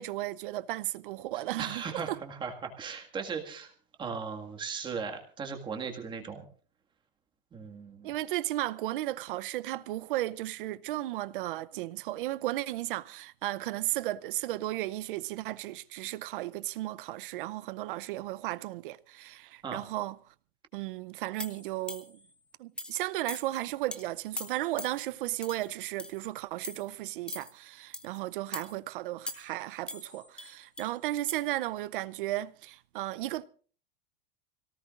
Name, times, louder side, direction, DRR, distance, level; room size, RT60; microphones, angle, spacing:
voice 1, 0.0-2.2 8.0-20.2 20.7-22.2 22.6-33.5, right 16 dB, 65° right, 0.7 m, -35 dB
voice 2, 1.6-3.7 4.0-6.4 7.5-8.1 19.6-19.8, right 5 dB, 15° right, 1.9 m, -37 dB
sound 1, 21.4-22.2 22.8-23.0 23.3-23.6 23.9-24.0 24.4-25.0 25.4-25.7 26.0-26.3 26.6-26.9 27.3-27.5 27.9-28.2 28.5-28.7 29.3-29.6 29.9-30.9 31.3-31.4, left 2 dB, 5° left, 0.8 m, -41 dB
25.5 x 18.0 x 2.5 m
supercardioid pair, 165°, 29 cm